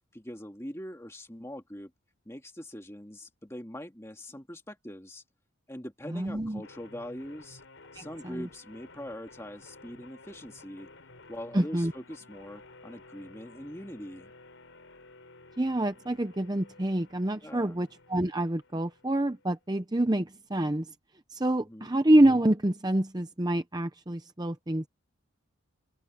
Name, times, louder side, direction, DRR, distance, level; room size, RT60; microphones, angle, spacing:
voice 1, 0.1-1.9 2.3-5.2 5.7-7.6 7.9-10.9 11.3-14.3 17.4-17.8 21.6-21.9, equal, 15° left, 2.3 m, -42 dB
voice 2, 6.1-6.6 7.9-8.5 11.5-11.9 15.6-20.9 21.3-24.9, right 1 dB, 20° right, 0.7 m, -27 dB
sound 1, 6.6-19.6, left 3 dB, 65° left, 4.1 m, -54 dB
open air
head